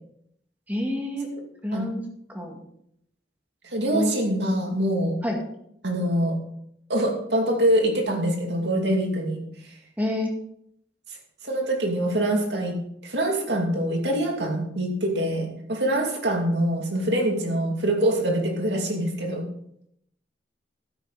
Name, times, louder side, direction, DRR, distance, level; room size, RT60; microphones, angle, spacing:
voice 1, 0.7-1.3 1.6-2.0 2.3-2.6 3.9-4.6 5.2-5.4 10.0-10.3, left 1 dB, 10° right, 1 dB, 2.2 m, -28 dB
voice 2, 3.6-5.2 5.8-6.4 6.9-9.8 11.1-11.2 11.4-19.5, right 1 dB, 65° right, 1 dB, 2.6 m, -25 dB
12.5 x 9.6 x 4.1 m, 0.73 s
head